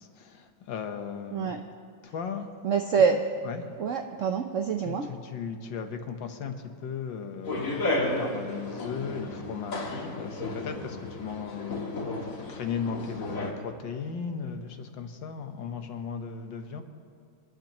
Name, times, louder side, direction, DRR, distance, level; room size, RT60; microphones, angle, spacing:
voice 1, 0.0-1.6 2.0-2.5 3.1-3.7 4.8-7.9 8.2-11.9 12.2-16.8, left 6 dB, 70° left, 6 dB, 1.7 m, -37 dB
voice 2, 2.6-3.2 3.8-5.1, right 6 dB, 70° right, 5 dB, 0.7 m, -25 dB
sound 1, 7.4-13.5, left 2 dB, 45° left, 1.8 m, -33 dB
27.0 x 11.5 x 3.0 m, 2.4 s
omnidirectional pair, 2.1 m